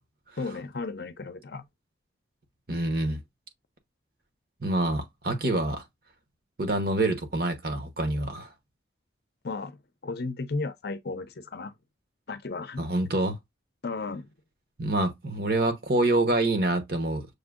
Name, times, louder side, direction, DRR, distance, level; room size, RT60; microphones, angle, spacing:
voice 1, 0.4-1.6 9.4-11.7 12.3-12.8 13.8-14.3, left 3 dB, 60° left, 0.6 m, -34 dB
voice 2, 2.7-3.2 4.6-5.8 6.6-8.5 12.8-13.4 14.8-17.3, right 2 dB, 55° right, 1.0 m, -26 dB
6.5 x 2.7 x 2.4 m
head